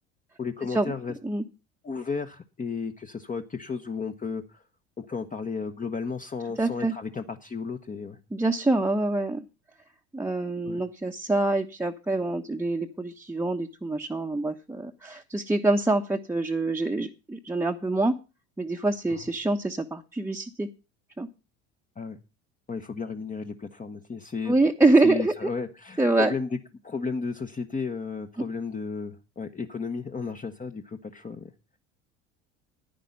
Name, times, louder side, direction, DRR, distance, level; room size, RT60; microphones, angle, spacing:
voice 1, 0.4-1.1 1.8-4.6 5.0-8.2 10.6-10.8 19.1-19.3 22.0-22.2 22.7-24.5 25.0-26.6 26.8-31.5, left 5 dB, 20° left, 6 dB, 1.2 m, -33 dB
voice 2, 6.6-6.9 8.3-9.4 10.1-18.1 18.6-20.7 21.2-21.3 24.5-25.5 26.0-26.3, right 2 dB, 5° right, 2 dB, 1.1 m, -25 dB
10.5 x 10.0 x 5.4 m, 0.30 s
hypercardioid pair, 75°, 36 cm